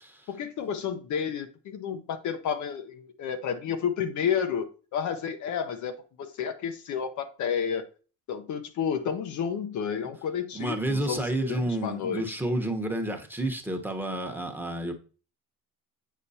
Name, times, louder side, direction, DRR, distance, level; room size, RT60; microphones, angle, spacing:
voice 1, 0.3-7.9 8.3-12.2, left 7 dB, 60° left, 0.8 m, -31 dB
voice 2, 10.5-14.9, right 1 dB, 5° right, 1.1 m, -30 dB
8.3 x 4.4 x 2.8 m
supercardioid pair, 90°, 34 cm